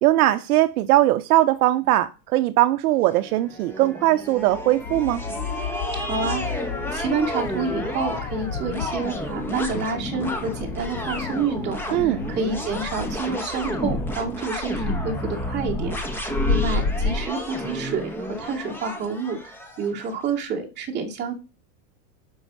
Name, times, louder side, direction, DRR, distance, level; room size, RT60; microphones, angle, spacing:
voice 1, 0.0-5.2 11.9-12.2, right 15 dB, 65° right, 0.7 m, -20 dB
sound 1, 3.1-20.1, equal, 5° left, 1.1 m, -31 dB
sound 2, 4.3-13.1, left 8 dB, 50° left, 1.0 m, -36 dB
voice 2, 6.0-21.3, right 4 dB, 20° right, 2.5 m, -29 dB
sound 3, 6.3-6.4 6.9-7.5 8.0-17.2, left 3 dB, 35° left, 2.5 m, -31 dB
12.0 x 5.5 x 6.2 m
supercardioid pair, 160°, 49 cm